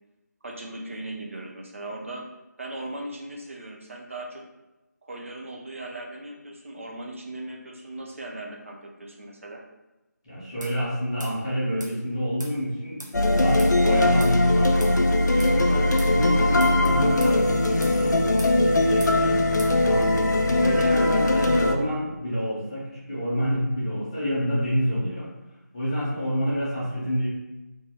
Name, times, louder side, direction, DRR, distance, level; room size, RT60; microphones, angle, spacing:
voice 1, 0.4-2.2 2.6-4.5 5.0-9.6 13.6-13.9, right 1 dB, 45° right, 0 dB, 0.6 m, -38 dB
voice 2, 10.2-13.0 13.3-25.3 25.7-27.3, equal, 20° left, -9 dB, 0.7 m, -28 dB
sound 1, 10.6-10.8 11.2-11.4 11.8-11.9 12.4-12.6 13.0-13.2 13.6-13.7 14.2-14.4 14.8-15.0 15.4-15.5 16.0-16.1 16.6-16.8 17.2-17.4 17.8-18.0 18.4-18.6 19.0-19.2 19.6-19.8, right 1 dB, 90° right, 0.8 m, -40 dB
sound 2, 13.1-21.7, left 2 dB, 75° left, 0.4 m, -20 dB
2.7 x 2.1 x 3.4 m, 1.0 s
figure-of-eight pair, 165°, 10 cm